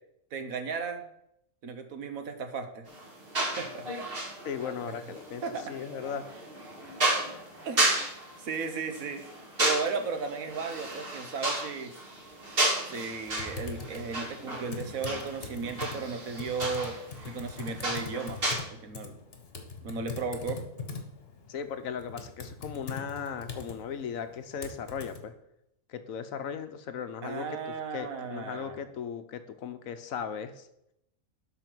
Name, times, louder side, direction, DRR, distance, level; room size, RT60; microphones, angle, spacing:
voice 1, 0.3-1.1 1.6-2.8 3.6-3.9 5.4-5.7 7.6-8.1 8.4-9.2 9.6-11.9 12.9-17.0 17.2-18.4 18.8-19.1 19.8-20.6 27.2-28.8, right 5 dB, 75° right, 7 dB, 1.5 m, -35 dB
sound 1, 2.9-18.5, right 1 dB, 40° right, 2.5 m, -33 dB
voice 2, 4.4-5.4 5.7-6.3 21.5-25.3 25.9-30.7, left 7 dB, 75° left, 9 dB, 1.2 m, -37 dB
Typing, 13.4-25.2, left 5 dB, 45° left, 1.4 m, -42 dB
12.0 x 4.4 x 6.1 m, 0.80 s
omnidirectional pair, 1.5 m